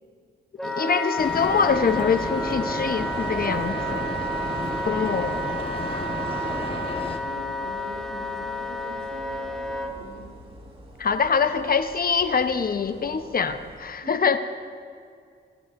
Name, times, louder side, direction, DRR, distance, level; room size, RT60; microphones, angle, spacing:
voice 1, 0.6-4.1 4.9-5.4 11.0-14.4, left 5 dB, 50° left, 9 dB, 0.9 m, -24 dB
Wind instrument woodwind instrument, 0.6-9.9, equal, ahead, 1.9 m, -31 dB
sound 1, 1.2-7.2, left 2 dB, 25° left, 1.4 m, -32 dB
sound 2, 1.4-13.8, equal, 30° right, 4.2 m, -46 dB
voice 2, 4.4-5.0 7.0-10.3 14.0-14.2, right 3 dB, 90° right, 0 dB, 2.0 m, -44 dB
25.5 x 15.0 x 2.6 m, 2.2 s
cardioid pair, 60°, 20 cm